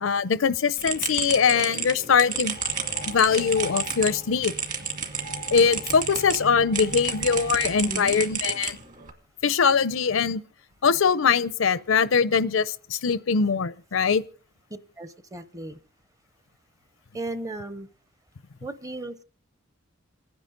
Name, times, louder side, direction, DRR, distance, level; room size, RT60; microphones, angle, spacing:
voice 1, 0.0-2.6 3.1-4.5 5.5-8.8 9.4-10.4 10.8-14.2, left 6 dB, 85° left, 0.6 m, -22 dB
sound 1, 0.8-6.4 6.7-9.1, right 5 dB, 40° right, 1.9 m, -31 dB
sound 2, 2.5-8.0, equal, 80° right, 1.4 m, -41 dB
voice 2, 15.0-15.8 17.1-17.9 18.6-19.2, right 2 dB, 15° right, 0.7 m, -35 dB
28.0 x 9.7 x 3.8 m
head